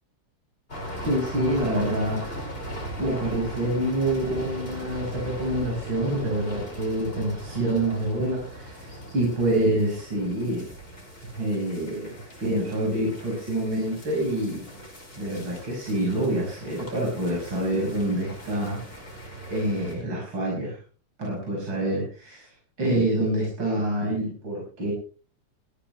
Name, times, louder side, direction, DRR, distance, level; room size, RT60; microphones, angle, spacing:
sound 1, 0.7-19.9, equal, 25° left, 5.7 m, -39 dB
voice 1, 1.0-2.3 3.0-10.7 11.2-14.7 15.2-19.1 19.5-20.8 21.2-22.5 22.8-24.9, right 1 dB, 60° right, -2 dB, 6.4 m, -27 dB
19.5 x 15.0 x 3.3 m, 0.38 s
omnidirectional pair, 2.4 m